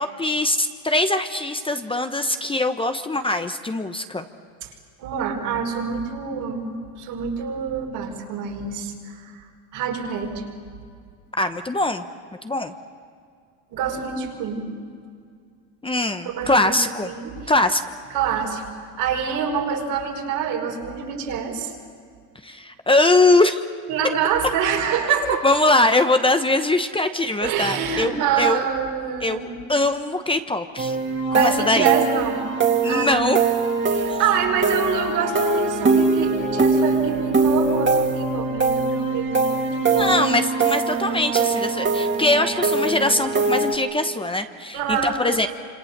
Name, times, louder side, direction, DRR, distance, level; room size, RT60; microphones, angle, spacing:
voice 1, 0.0-4.2 11.4-12.0 12.4-12.7 15.8-17.1 17.5-17.8 22.4-23.6 25.2-28.6 29.2-29.4 29.7-31.0 31.3-31.9 32.8-33.4 34.1-34.2 39.9-45.5, left 2 dB, 15° left, 8 dB, 1.0 m, -22 dB
voice 2, 5.0-9.4 9.7-10.4 13.7-14.6 16.3-16.7 17.2-17.5 18.1-18.6 19.0-21.8 23.9-25.5 27.4-29.6 31.3-32.5 32.8-33.3 33.9-40.1 44.7-45.2, right 6 dB, 70° right, 0 dB, 5.4 m, -26 dB
sound 1, 30.8-43.7, right 4 dB, 25° right, 2.7 m, -22 dB
27.0 x 27.0 x 6.8 m, 2.2 s
supercardioid pair, 100°, 41 cm